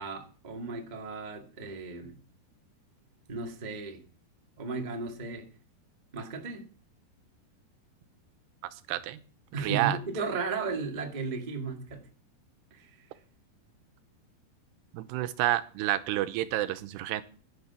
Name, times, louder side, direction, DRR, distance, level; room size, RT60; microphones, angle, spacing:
voice 1, 0.0-2.2 3.3-4.0 4.6-5.5 6.1-6.7 9.5-12.1 12.7-13.1, right 4 dB, 25° right, 3 dB, 0.8 m, -35 dB
voice 2, 9.6-10.0 14.9-17.2, right 14 dB, 85° right, 12 dB, 2.9 m, -29 dB
10.5 x 10.5 x 6.9 m, 0.40 s
omnidirectional pair, 4.8 m